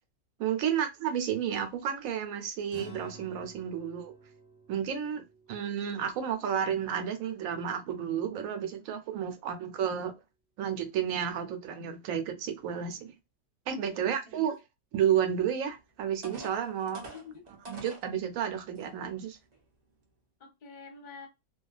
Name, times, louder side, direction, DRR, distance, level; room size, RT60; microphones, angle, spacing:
voice 1, 0.4-4.1 4.7-5.2 5.5-10.1 10.6-13.1 13.7-14.6 14.9-17.0 17.7-19.4, right 8 dB, 75° right, 1.0 m, -31 dB
sound 1, 2.7-7.4, equal, 10° left, 0.7 m, -52 dB
voice 2, 13.9-14.4 17.1-17.5 20.4-21.3, left 5 dB, 45° left, 0.8 m, -48 dB
sound 2, 15.6-15.7 16.2-18.1 18.7-18.8 19.4-19.6, right 2 dB, 45° right, 0.6 m, -45 dB
2.3 x 2.3 x 2.3 m
omnidirectional pair, 1.5 m